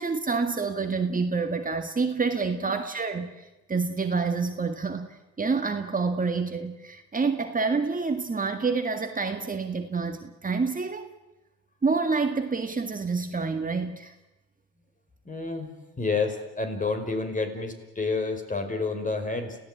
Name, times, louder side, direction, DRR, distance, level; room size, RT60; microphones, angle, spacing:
voice 1, 0.0-11.1 11.8-14.2, right 4 dB, 25° right, 6 dB, 1.9 m, -28 dB
voice 2, 15.2-15.7 16.0-19.6, left 4 dB, 25° left, 6 dB, 5.0 m, -29 dB
29.5 x 16.0 x 9.1 m, 1.0 s
cardioid pair, 90°, 30 cm